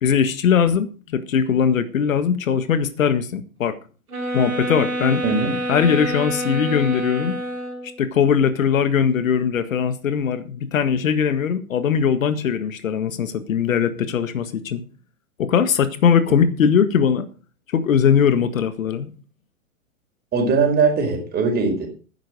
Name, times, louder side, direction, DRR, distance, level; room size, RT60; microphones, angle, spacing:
voice 1, 0.0-3.8 4.3-5.2 5.7-7.4 7.8-14.8 15.4-17.3 17.7-19.1, left 7 dB, 65° left, 1.8 m, -20 dB
sound 1, 4.1-8.0, right 1 dB, 85° right, 5.0 m, -27 dB
voice 2, 20.3-21.9, right 4 dB, 20° right, 4.7 m, -20 dB
12.5 x 9.9 x 5.2 m
hypercardioid pair, 120°, 43 cm